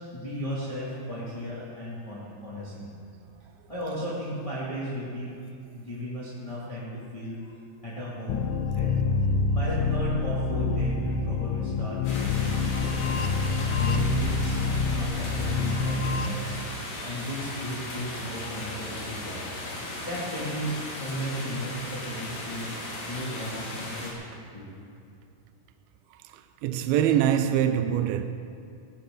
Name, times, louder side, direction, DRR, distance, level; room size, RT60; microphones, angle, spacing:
voice 1, 0.1-2.9 3.7-5.3 5.7-7.5 7.8-8.9 9.5-13.3 13.8-14.6 14.9-16.5 17.0-19.4 20.0-22.7 23.1-24.1 24.5-24.6, equal, 10° left, 1.5 m, -35 dB
sound 1, 8.3-16.3, left 4 dB, 80° left, 1.9 m, -26 dB
sound 2, 12.0-24.1, left 1 dB, 65° left, 4.1 m, -37 dB
voice 2, 26.6-28.2, right 10 dB, 85° right, 2.4 m, -23 dB
18.0 x 15.0 x 3.8 m
omnidirectional pair, 4.4 m